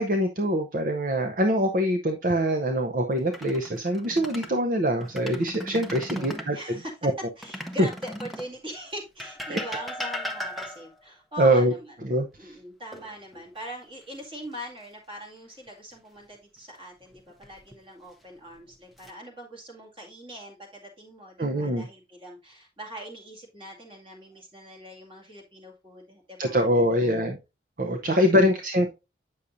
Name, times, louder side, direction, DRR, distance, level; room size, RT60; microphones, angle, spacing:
voice 1, 0.0-6.6 7.8-7.9 9.5-9.6 11.4-11.7 12.0-12.5 21.4-21.9 26.4-27.4 27.8-28.9, equal, 45° right, 5 dB, 0.6 m, -24 dB
sound 1, 3.2-4.6 5.0-6.5 7.4-8.6 9.2-11.0 12.9-13.6 14.0-14.2 17.1-17.7 18.5-19.1, equal, ahead, 0.7 m, -37 dB
voice 2, 6.1-7.0 7.4-12.0 12.4-27.3, equal, 30° right, 0 dB, 2.1 m, -42 dB
8.4 x 6.3 x 2.6 m, 0.26 s
head